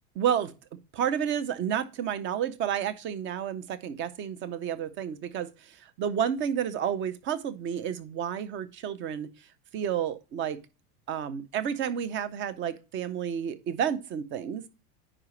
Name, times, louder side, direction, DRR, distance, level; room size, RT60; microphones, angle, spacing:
voice 1, 0.2-0.5 0.9-9.3 9.7-10.6 11.1-14.6, right 9 dB, 25° right, 0.5 m, -30 dB
9.8 x 4.8 x 3.1 m
supercardioid pair, 145°, 48 cm